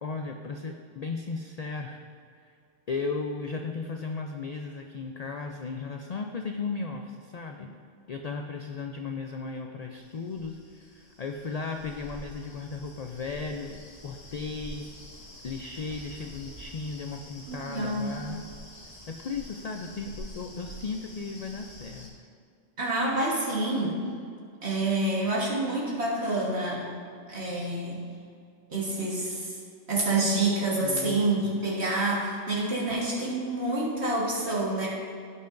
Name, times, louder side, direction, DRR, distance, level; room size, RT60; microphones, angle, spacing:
voice 1, 0.0-2.0 2.4-2.6 2.9-7.7 8.1-14.9 15.4-18.4 19.1-22.1 30.8-31.6, left 4 dB, 65° left, 4 dB, 0.4 m, -36 dB
sound 1, 10.0-22.1, equal, 35° left, 1.3 m, -47 dB
voice 2, 17.5-18.1 22.8-24.1 24.6-26.9 27.3-28.0 28.7-29.6 29.9-34.9, right 2 dB, 60° right, -5 dB, 1.7 m, -27 dB
16.0 x 5.8 x 2.6 m, 2.3 s
omnidirectional pair, 1.2 m